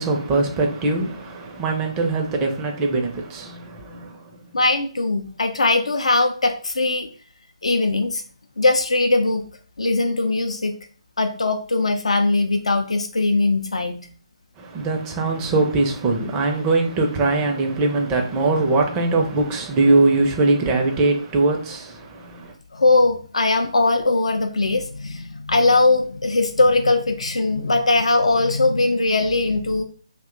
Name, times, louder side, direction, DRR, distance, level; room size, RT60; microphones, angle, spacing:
voice 1, 0.0-4.4 14.6-22.5, right 3 dB, 15° right, 0.5 m, -21 dB
voice 2, 4.5-7.1 7.6-8.2 8.6-9.4 9.8-10.8 11.2-14.1 22.7-29.8, left 2 dB, 70° left, 0.4 m, -20 dB
2.7 x 2.2 x 3.7 m
figure-of-eight pair, 145°, 3 cm